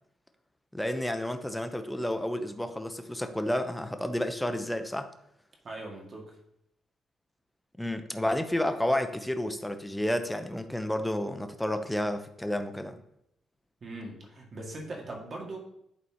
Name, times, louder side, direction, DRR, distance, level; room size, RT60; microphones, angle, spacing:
voice 1, 0.7-5.1 7.8-13.0, left 1 dB, 5° left, 8 dB, 0.7 m, -31 dB
voice 2, 5.6-6.4 13.8-15.6, right 2 dB, 40° right, 0 dB, 1.9 m, -40 dB
11.0 x 4.1 x 2.9 m, 0.77 s
cardioid pair, 90°, 0 cm